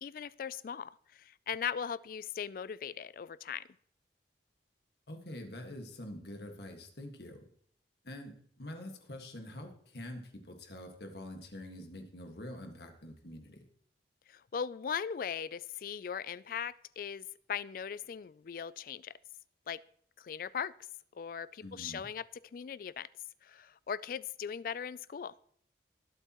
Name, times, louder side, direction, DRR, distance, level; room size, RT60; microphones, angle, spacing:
voice 1, 0.0-3.6 14.3-19.1 19.7-19.8 20.2-20.7 21.1-22.2 22.5-23.1 23.4-25.3, left 7 dB, 50° left, 19 dB, 0.3 m, -39 dB
voice 2, 5.1-7.4 8.0-13.6 21.6-22.1, left 1 dB, 65° left, 4 dB, 1.7 m, -46 dB
20.0 x 8.1 x 3.0 m, 0.63 s
head